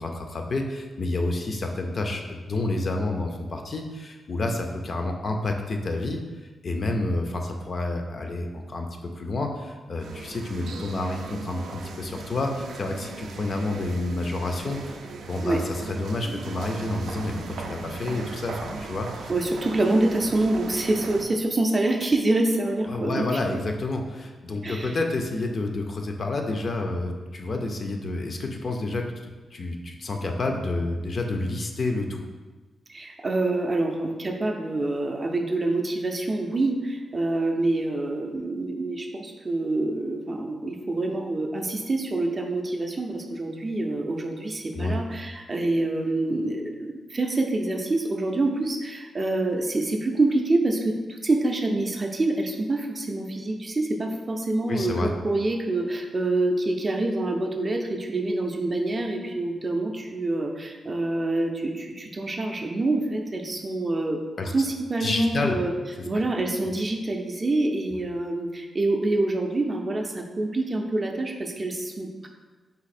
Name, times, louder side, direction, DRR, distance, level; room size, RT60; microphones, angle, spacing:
voice 1, 0.0-8.9 9.2-15.0 15.3-19.3 22.8-32.3 44.7-45.0 54.6-55.1 64.4-64.5 65.0-65.6, left 2 dB, 40° left, 3 dB, 0.4 m, -29 dB
sound 1, 10.0-21.2, right 3 dB, 90° right, 0.4 m, -38 dB
voice 2, 19.3-23.3 24.6-25.0 32.9-64.2 64.5-65.7 66.0-72.3, right 2 dB, 25° right, 3 dB, 0.4 m, -26 dB
4.1 x 2.7 x 4.1 m, 1.3 s
wide cardioid pair, 150°, 0 cm